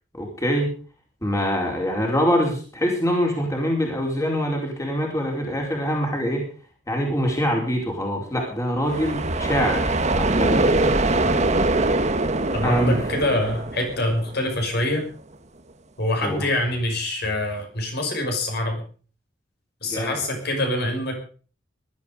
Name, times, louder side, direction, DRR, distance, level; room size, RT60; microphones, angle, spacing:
voice 1, 0.2-0.7 1.2-6.4 6.9-10.9 12.6-13.0 16.2-16.5 19.8-20.2, equal, 15° left, 0 dB, 4.5 m, -24 dB
sound 1, 8.8-14.6, right 2 dB, 35° right, 1.6 m, -23 dB
voice 2, 12.5-15.1 16.0-18.8 19.8-21.2, left 1 dB, 55° left, 3 dB, 5.9 m, -25 dB
19.5 x 12.5 x 5.2 m, 0.41 s
head